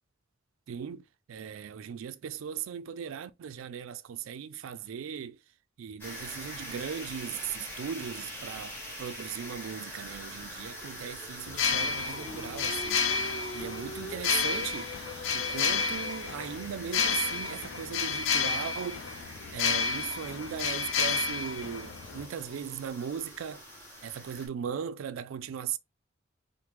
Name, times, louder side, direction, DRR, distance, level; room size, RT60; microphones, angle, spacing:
voice 1, 0.7-1.0 1.3-5.4 5.8-14.9 15.3-19.2 19.5-23.6 24.0-25.8, right 8 dB, 80° right, 0.3 m, -38 dB
sound 1, 6.0-24.5, equal, 10° left, 1.1 m, -44 dB
sound 2, 11.5-22.3, left 5 dB, 75° left, 0.3 m, -31 dB
Singing, 12.2-17.3, left 1 dB, 25° left, 0.8 m, -44 dB
3.0 x 2.1 x 3.2 m
head